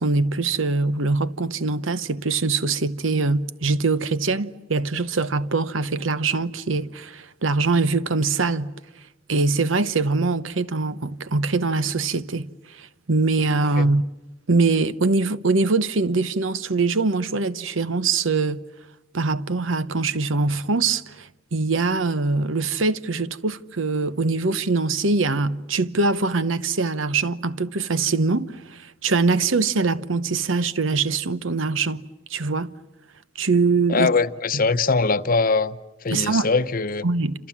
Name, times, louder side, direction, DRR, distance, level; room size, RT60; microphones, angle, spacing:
voice 1, 0.0-8.7 9.3-14.0 14.5-18.6 19.1-32.0 32.3-32.7 33.3-34.1 36.1-36.5 37.0-37.3, right 3 dB, 80° right, 1.0 m, -23 dB
voice 2, 33.9-37.0, left 4 dB, 45° left, 0.8 m, -22 dB
28.5 x 27.0 x 7.3 m
head